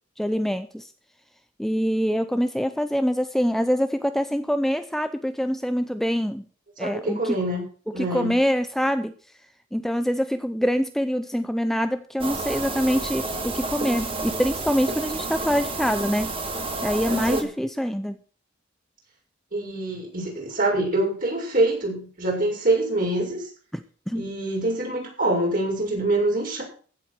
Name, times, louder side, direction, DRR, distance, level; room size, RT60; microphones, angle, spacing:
voice 1, 0.2-0.9 1.6-6.5 6.8-7.4 7.9-9.1 9.7-16.3 16.8-18.2 23.7-24.3, equal, ahead, 9 dB, 0.6 m, -25 dB
voice 2, 6.8-7.6 7.9-8.3 17.1-17.5 19.5-23.5 24.1-26.6, right 2 dB, 45° right, 0 dB, 6.5 m, -25 dB
sound 1, 12.2-17.4, right 2 dB, 30° right, 2.4 m, -30 dB
15.5 x 7.9 x 6.3 m, 0.42 s
head